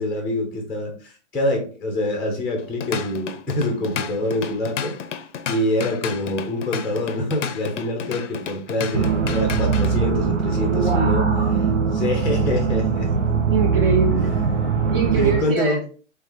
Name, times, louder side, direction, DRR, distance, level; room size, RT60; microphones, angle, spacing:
voice 1, 0.0-5.0 5.5-11.2 11.9-13.1 15.1-15.8, left 1 dB, 5° left, 2 dB, 0.5 m, -25 dB
Drum kit / Drum, 2.6-10.0, left 8 dB, 80° left, 0.6 m, -32 dB
sound 1, 8.9-15.4, right 5 dB, 80° right, 0.9 m, -21 dB
voice 2, 10.7-11.6 13.5-14.3 14.9-16.0, right 5 dB, 50° right, 3 dB, 0.7 m, -24 dB
3.4 x 3.2 x 3.6 m, 0.39 s
hypercardioid pair, 130°, 36 cm